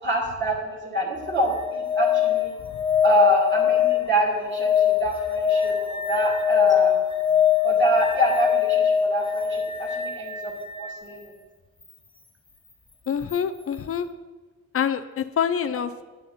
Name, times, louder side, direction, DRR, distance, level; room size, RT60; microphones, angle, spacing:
voice 1, 0.0-2.5 3.0-6.9 7.6-10.5 10.8-11.3, right 1 dB, 35° right, -3 dB, 2.4 m, -26 dB
sound 1, 1.2-11.0 13.3-13.4, left 8 dB, 15° left, 0.8 m, -23 dB
voice 2, 13.1-14.1 14.7-16.1, left 8 dB, 45° left, 12 dB, 0.6 m, -26 dB
9.3 x 6.4 x 5.6 m, 1.3 s
cardioid pair, 105°, 32 cm